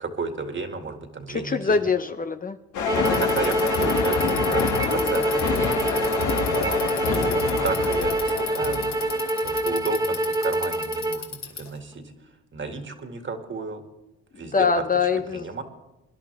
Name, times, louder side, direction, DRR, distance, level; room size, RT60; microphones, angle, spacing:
voice 1, 0.0-1.9 3.1-6.8 7.1-8.8 9.4-12.1 12.5-13.8 14.4-14.8 15.3-15.6, right 4 dB, 40° right, 5 dB, 2.2 m, -33 dB
voice 2, 1.3-2.6 2.9-3.2 7.0-7.4 14.5-15.4, left 5 dB, 30° left, 9 dB, 0.7 m, -24 dB
sound 1, 2.7-9.8, left 5 dB, 75° left, 2.4 m, -27 dB
sound 2, 2.9-11.2, right 1 dB, 10° right, 0.9 m, -26 dB
Bicycle, 3.0-11.8, left 7 dB, 60° left, 2.7 m, -35 dB
24.0 x 11.0 x 3.5 m, 0.98 s
cardioid pair, 90°, 30 cm